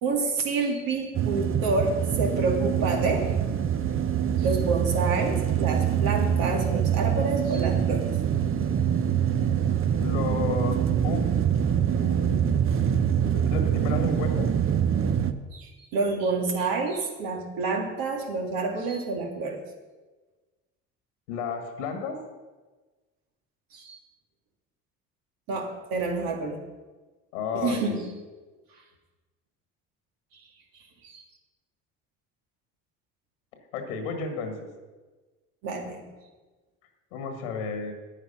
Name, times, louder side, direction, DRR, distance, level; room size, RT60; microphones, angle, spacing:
voice 1, 0.0-3.4 4.4-8.1 15.5-19.6 23.7-24.0 25.5-26.6 27.5-28.1 31.0-31.2 35.6-36.1, right 3 dB, 65° right, 2 dB, 2.2 m, -28 dB
sound 1, 1.1-15.3, right 8 dB, 35° right, 0.8 m, -25 dB
voice 2, 10.0-11.2 12.0-12.7 13.3-14.5 21.3-22.2 27.3-28.0 33.7-34.7 37.1-37.9, left 5 dB, 85° left, 5 dB, 1.6 m, -32 dB
9.2 x 9.1 x 5.6 m, 1.3 s
hypercardioid pair, 65°, 37 cm